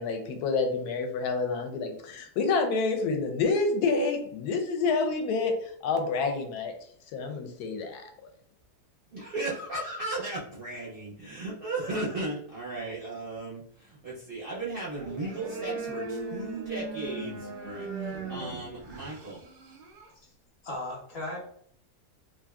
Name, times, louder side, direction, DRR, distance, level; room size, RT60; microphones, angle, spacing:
voice 1, 0.0-5.6 5.8-6.7 7.1-8.0, left 4 dB, 75° left, 5 dB, 1.1 m, -28 dB
voice 2, 9.1-19.4, right 2 dB, 60° right, -5 dB, 0.6 m, -36 dB
sound 1, 14.9-20.1, right 3 dB, 90° right, 1.2 m, -38 dB
voice 3, 20.6-21.4, left 1 dB, 45° left, -2 dB, 0.9 m, -36 dB
2.9 x 2.5 x 2.3 m, 0.63 s
omnidirectional pair, 1.7 m